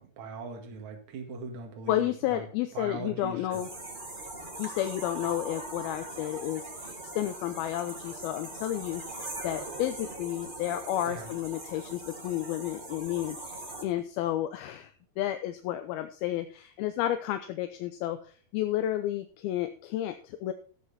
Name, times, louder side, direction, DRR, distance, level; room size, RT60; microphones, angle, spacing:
voice 1, 0.0-2.5 2.7-3.6 11.1-11.3, right 3 dB, 55° right, 3 dB, 2.9 m, -40 dB
voice 2, 1.9-3.7 4.6-20.5, left 13 dB, 80° left, 8 dB, 2.5 m, -32 dB
sound 1, 3.5-13.8, right 2 dB, 85° right, 0.4 m, -41 dB
14.0 x 8.0 x 4.2 m, 0.40 s
omnidirectional pair, 4.6 m